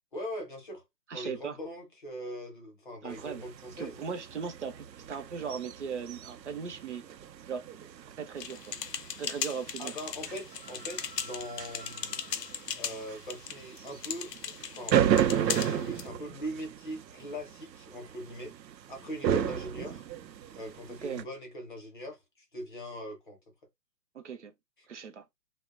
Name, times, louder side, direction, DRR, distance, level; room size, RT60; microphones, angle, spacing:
voice 1, 0.1-0.8 1.1-4.0 9.8-12.2 12.8-14.3 14.7-18.6 18.9-20.0 20.6-23.4 24.8-24.9, equal, 30° left, 0.7 m, -41 dB
voice 2, 1.1-1.6 3.0-3.4 3.8-7.0 7.5-7.7 8.2-8.7 9.2-9.9 21.0-21.3 24.1-24.5 24.9-25.2, right 6 dB, 45° right, 0.6 m, -38 dB
sound 1, 3.1-21.2, right 9 dB, 90° right, 0.6 m, -34 dB
sound 2, 8.4-16.1, left 8 dB, 75° left, 0.6 m, -38 dB
2.6 x 2.1 x 2.3 m
hypercardioid pair, 155°, 49 cm